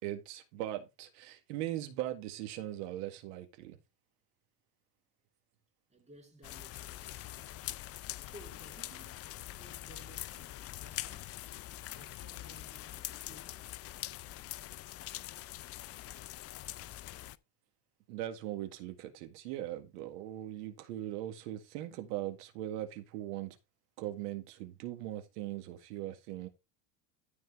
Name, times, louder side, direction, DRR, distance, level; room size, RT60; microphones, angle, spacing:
voice 1, 0.0-3.8 18.1-23.6 24.0-26.5, right 13 dB, 80° right, 1.8 m, -40 dB
voice 2, 5.9-7.4 8.2-9.3 9.6-11.4 11.9-13.7, right 1 dB, 15° right, 2.9 m, -57 dB
sound 1, 6.4-17.4, left 15 dB, 35° left, 0.4 m, -44 dB
13.5 x 4.4 x 4.5 m
supercardioid pair, 130°, 47 cm